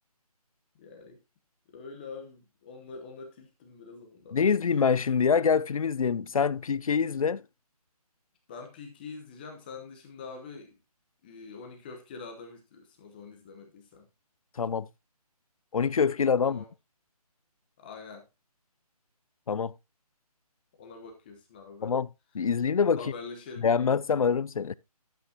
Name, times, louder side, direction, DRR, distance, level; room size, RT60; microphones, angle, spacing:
voice 1, 0.8-1.2 1.7-4.4 8.5-10.7 11.2-14.1 16.4-16.7 17.8-18.3 20.8-21.9 22.9-23.9, left 4 dB, 15° left, 1.0 m, -45 dB
voice 2, 4.3-7.4 14.6-14.9 15.7-16.6 19.5-19.7 21.8-22.1 22.3-23.0 23.6-24.7, left 6 dB, 60° left, 0.5 m, -25 dB
13.0 x 8.4 x 2.8 m
hypercardioid pair, 165°, 20 cm